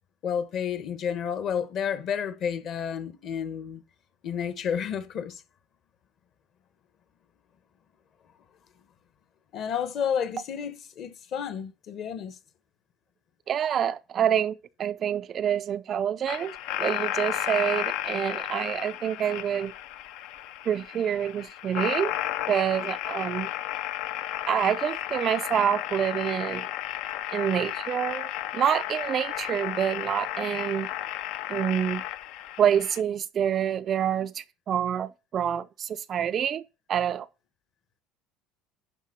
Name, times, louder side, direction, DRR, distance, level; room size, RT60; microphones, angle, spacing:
voice 1, 0.2-3.8 4.2-5.4 9.5-12.4, left 8 dB, 40° left, 1.1 m, -31 dB
voice 2, 13.5-19.7 20.7-22.1 22.5-23.5 24.5-26.7 27.3-30.9 31.5-32.0 32.6-37.3, right 9 dB, 30° right, 0.4 m, -27 dB
sound 1, 16.3-33.0, left 13 dB, 60° left, 0.6 m, -33 dB
11.5 x 4.4 x 5.8 m
cardioid pair, 160°, 0 cm